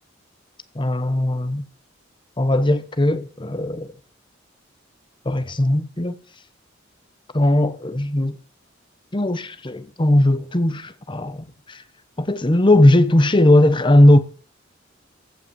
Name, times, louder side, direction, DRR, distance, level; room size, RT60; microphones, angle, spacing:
voice 1, 0.7-1.6 2.4-3.9 5.2-6.1 7.3-8.4 9.1-11.8 12.2-14.2, left 1 dB, 25° left, 1.0 m, -18 dB
15.0 x 5.7 x 7.4 m
head